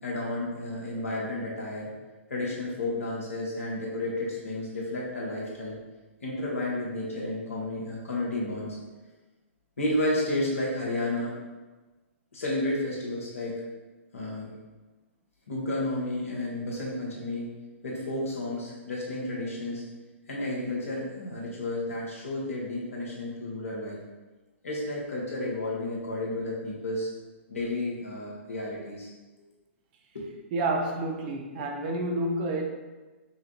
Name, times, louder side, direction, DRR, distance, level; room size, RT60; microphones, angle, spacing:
voice 1, 0.0-1.9 2.3-5.8 6.2-8.8 9.8-11.3 12.3-13.6 14.1-14.5 15.5-17.5 17.8-19.8 20.3-24.0 24.6-27.1 27.5-29.1 30.1-30.3, left 1 dB, 80° left, -4 dB, 1.4 m, -32 dB
voice 2, 30.5-32.7, right 2 dB, 40° right, 3 dB, 0.6 m, -29 dB
5.5 x 2.4 x 2.9 m, 1.2 s
figure-of-eight pair, 125°, 7 cm